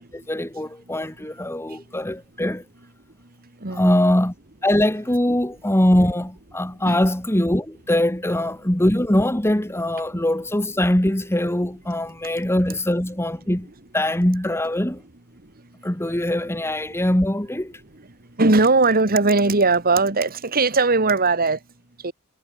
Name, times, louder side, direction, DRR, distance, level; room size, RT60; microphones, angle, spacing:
voice 1, 0.1-2.6 3.7-4.3 4.6-13.7 13.9-15.0 15.8-17.8, left 1 dB, 10° left, 1.5 m, -22 dB
voice 2, 3.6-4.1 6.9-7.0 18.4-21.6 22.0-22.1, right 3 dB, 45° right, 2.1 m, -19 dB
head